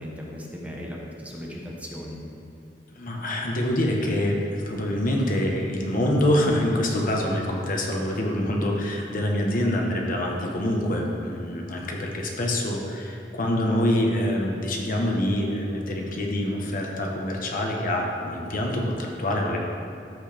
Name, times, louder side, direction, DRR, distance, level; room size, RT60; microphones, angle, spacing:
voice 1, 0.0-2.2, equal, 10° right, -3 dB, 1.1 m, -37 dB
voice 2, 2.9-19.6, left 1 dB, 50° left, 0 dB, 1.2 m, -25 dB
13.5 x 6.4 x 3.5 m, 2.5 s
head